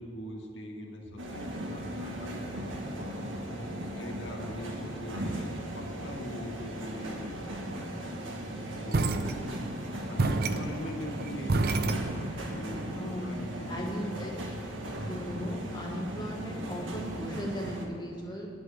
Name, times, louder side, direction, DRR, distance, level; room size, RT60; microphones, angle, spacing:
voice 1, 0.0-3.3 3.9-7.9 8.8-9.4 10.1-12.1 12.5-14.1, equal, 70° left, -1 dB, 1.8 m, -42 dB
sound 1, 1.2-17.9, right 1 dB, 80° right, 1.7 m, -38 dB
sound 2, 8.9-9.8 10.2-12.6, right 3 dB, 50° right, 0.6 m, -29 dB
voice 2, 13.7-14.3 15.0-18.5, equal, 20° left, -2 dB, 1.4 m, -37 dB
9.9 x 7.9 x 6.9 m, 2.8 s
head